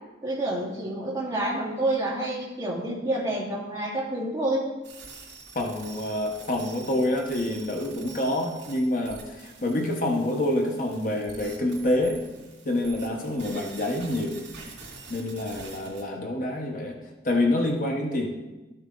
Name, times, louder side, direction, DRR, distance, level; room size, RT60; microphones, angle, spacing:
voice 1, 0.2-4.6, right 1 dB, 20° right, -5 dB, 2.5 m, -28 dB
sound 1, 4.8-16.0, right 4 dB, 80° right, 2.9 m, -46 dB
voice 2, 5.5-12.2 12.6-14.4 15.1-17.0 17.2-18.3, left 1 dB, 45° left, 1 dB, 1.0 m, -27 dB
13.0 x 6.8 x 3.9 m, 1.1 s
head